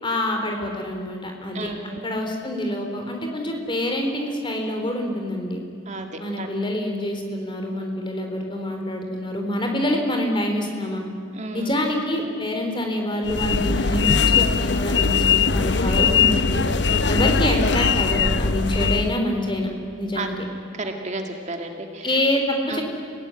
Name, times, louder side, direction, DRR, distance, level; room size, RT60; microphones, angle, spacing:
voice 1, 0.0-1.7 2.0-5.6 6.2-11.0 11.5-16.7 17.1-19.7 20.0-20.3 22.0-22.8, left 1 dB, 25° left, 3 dB, 4.0 m, -26 dB
voice 2, 1.5-2.2 5.9-6.5 11.3-11.8 20.2-20.3 20.8-22.1 22.7-22.8, right 2 dB, 35° right, 4 dB, 2.0 m, -32 dB
sound 1, 13.2-19.2, left 5 dB, 60° left, 0.8 m, -20 dB
30.0 x 17.5 x 10.0 m, 2.2 s
head